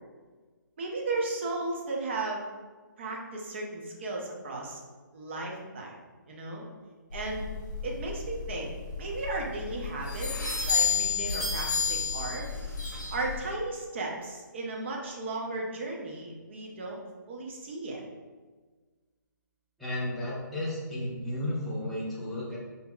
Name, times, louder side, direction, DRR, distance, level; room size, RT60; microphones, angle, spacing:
voice 1, 0.8-2.5 3.0-4.8 5.1-6.0 6.3-6.6 7.1-7.5 7.8-8.7 9.0-12.5 13.1-17.0 17.3-18.0, right 2 dB, 35° right, -1 dB, 0.7 m, -35 dB
sound 1, 7.1-13.5, left 5 dB, 60° left, 1.1 m, -31 dB
voice 2, 19.8-22.6, left 1 dB, ahead, -8 dB, 0.3 m, -33 dB
5.4 x 2.8 x 2.3 m, 1.4 s
hypercardioid pair, 165°, 11 cm